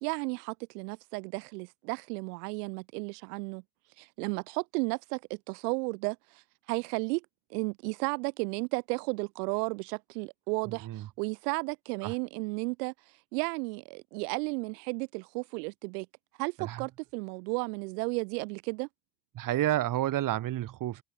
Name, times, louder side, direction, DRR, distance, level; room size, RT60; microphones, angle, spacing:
voice 1, 0.0-3.6 4.0-6.4 6.7-7.2 7.5-12.9 13.3-16.1 16.4-18.9, right 30 dB, 75° right, 1.3 m, -33 dB
voice 2, 10.7-11.1 12.0-12.1 16.6-16.9 19.3-21.0, right 13 dB, 40° right, 1.6 m, -30 dB
supercardioid pair, 105°, 48 cm